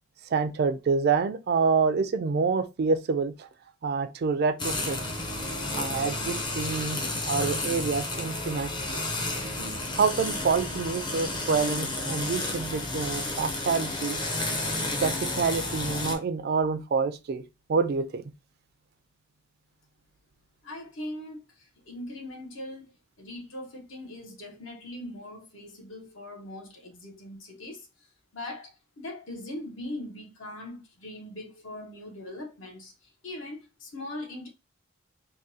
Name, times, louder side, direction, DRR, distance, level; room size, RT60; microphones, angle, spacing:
voice 1, 0.3-3.5 3.8-5.0 5.8-7.0 7.3-9.0 9.9-14.2 15.0-17.4 17.7-18.2, right 5 dB, 50° right, 0.3 m, -27 dB
sound 1, 4.6-16.2, left 2 dB, 20° left, 0.5 m, -31 dB
voice 2, 20.6-22.9 23.2-27.9 28.3-32.9 33.2-34.5, left 1 dB, 70° left, 0.9 m, -40 dB
3.6 x 2.2 x 2.7 m
head